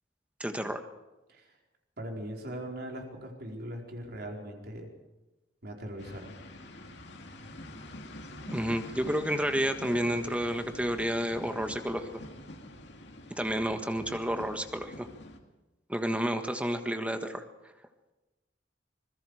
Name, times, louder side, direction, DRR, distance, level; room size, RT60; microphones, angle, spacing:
voice 1, 0.4-0.8 8.5-12.2 13.3-15.1 15.9-17.4, equal, 5° right, 7 dB, 1.5 m, -30 dB
voice 2, 2.0-4.9 5.6-6.3, right 1 dB, 60° right, 1 dB, 4.5 m, -40 dB
sound 1, 6.0-15.4, left 1 dB, 70° left, 2.5 m, -46 dB
26.0 x 21.5 x 5.0 m, 1.1 s
head